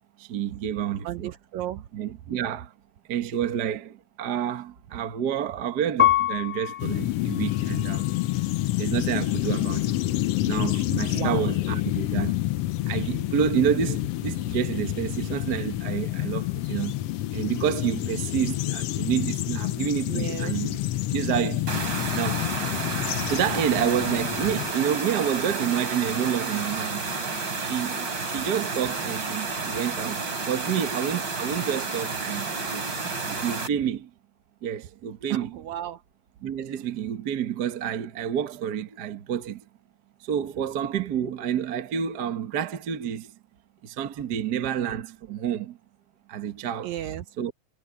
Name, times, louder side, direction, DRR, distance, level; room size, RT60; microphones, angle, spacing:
voice 1, 0.2-1.3 1.9-2.7 3.1-8.1 8.8-10.0 10.4-12.3 12.9-16.9 17.3-20.8 21.1-21.8 22.1-22.4 23.3-27.0 27.6-32.8 33.3-34.1 34.6-35.5 36.4-39.6 40.2-43.3 43.8-45.8 46.3-46.9 47.4-47.5, right 9 dB, 55° right, 1.1 m, -29 dB
voice 2, 1.0-1.8 11.1-11.4 20.1-20.6 35.3-36.0 46.8-47.3, right 12 dB, 70° right, 1.9 m, -33 dB
Piano, 6.0-8.7 9.4-10.1, left 12 dB, 30° left, 0.6 m, -28 dB
sound 1, 6.8-24.7, left 15 dB, 90° left, 1.3 m, -28 dB
sound 2, 21.7-33.7, right 4 dB, 35° right, 3.8 m, -31 dB
omnidirectional pair, 3.7 m